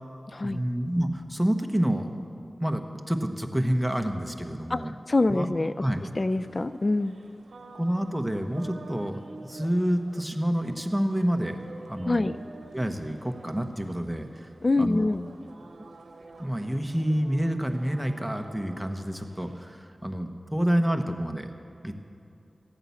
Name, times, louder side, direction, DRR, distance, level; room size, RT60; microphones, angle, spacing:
voice 1, 0.4-2.1 2.6-4.9 5.3-5.5 5.8-6.0 7.7-12.3 12.7-14.5 14.8-15.0 16.4-21.5 21.8-21.9, equal, 5° right, 5 dB, 1.2 m, -28 dB
voice 2, 4.7-5.8 6.2-7.2 12.1-12.4 14.6-15.3, left 2 dB, 45° left, 13 dB, 0.4 m, -25 dB
sound 1, 6.0-19.6, right 3 dB, 85° right, 0.8 m, -49 dB
14.0 x 8.9 x 7.1 m, 2.7 s
cardioid pair, 40°, 0 cm